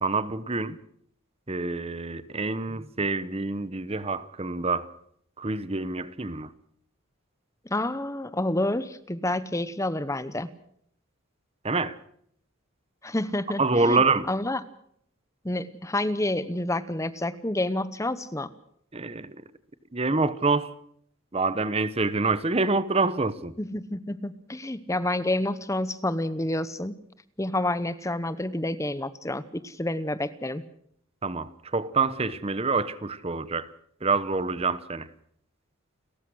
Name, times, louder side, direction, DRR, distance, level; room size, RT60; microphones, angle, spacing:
voice 1, 0.0-0.8 1.5-4.9 5.4-6.5 11.6-12.0 13.6-14.3 18.9-19.3 19.9-20.7 21.3-23.5 31.2-33.7 34.0-35.1, right 3 dB, 30° right, 0.9 m, -26 dB
voice 2, 7.7-10.5 13.0-14.6 15.4-18.5 23.6-26.9 27.4-30.6, left 1 dB, 15° left, 0.9 m, -29 dB
30.0 x 14.5 x 6.3 m
head